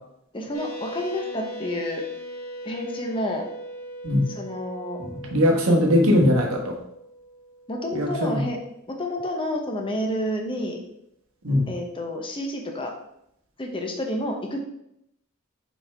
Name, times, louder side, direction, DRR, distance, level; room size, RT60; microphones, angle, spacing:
voice 1, 0.3-2.0 2.6-3.5 4.3-5.0 7.7-8.6 8.9-10.8 11.7-12.9 13.6-14.6, left 1 dB, 25° left, 2 dB, 0.8 m, -29 dB
sound 1, 0.5-8.6, right 1 dB, 90° left, 1.1 m, -39 dB
voice 2, 5.0-6.8 7.9-8.4 11.4-11.7, left 1 dB, 80° right, 0 dB, 1.3 m, -21 dB
6.2 x 4.5 x 3.4 m, 0.78 s
head